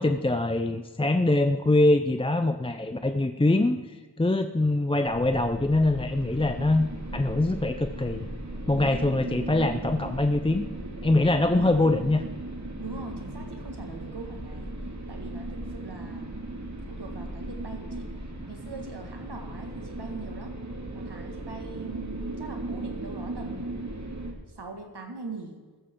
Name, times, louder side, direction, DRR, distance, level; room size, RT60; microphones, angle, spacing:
voice 1, 0.0-3.8 4.2-8.3 8.7-10.7 11.0-12.2, left 2 dB, 15° left, 7 dB, 0.5 m, -23 dB
sound 1, 5.0-24.3, right 2 dB, 45° right, 2.1 m, -37 dB
voice 2, 12.8-14.7 15.1-16.5 16.9-18.1 18.5-20.6 20.9-23.9 24.5-25.6, right 3 dB, 80° right, 3 dB, 2.0 m, -41 dB
14.5 x 14.0 x 3.8 m, 1.4 s
wide cardioid pair, 70°, 39 cm